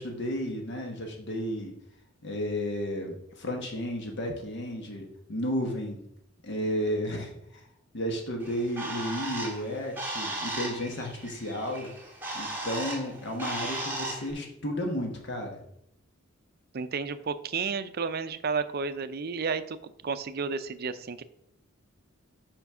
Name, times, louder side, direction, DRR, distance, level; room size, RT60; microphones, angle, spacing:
voice 1, 0.0-1.7 2.2-6.0 6.4-7.6 7.9-11.9 12.3-15.6, equal, 55° left, 2 dB, 1.2 m, -33 dB
Bird, 8.4-14.3, right 2 dB, 10° right, 1.7 m, -36 dB
voice 2, 16.7-21.2, right 5 dB, 45° right, 12 dB, 0.5 m, -32 dB
5.8 x 5.2 x 6.0 m, 0.75 s
head